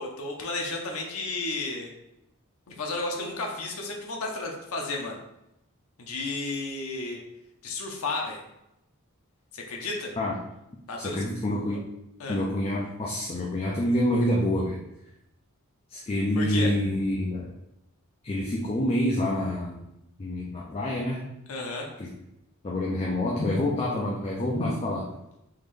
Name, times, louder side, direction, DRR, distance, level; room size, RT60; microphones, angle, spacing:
voice 1, 0.0-1.9 2.7-5.2 6.0-7.2 7.6-8.4 9.5-10.1 10.9-11.2 12.2-12.4 16.4-16.7 21.5-21.9, left 3 dB, 70° left, 0 dB, 0.6 m, -32 dB
voice 2, 11.0-11.8 12.3-14.8 15.9-17.5 18.2-19.9 20.2-21.2 22.0-22.1 22.6-25.1, left 1 dB, 25° left, -3 dB, 0.4 m, -27 dB
3.7 x 2.5 x 3.2 m, 0.87 s
head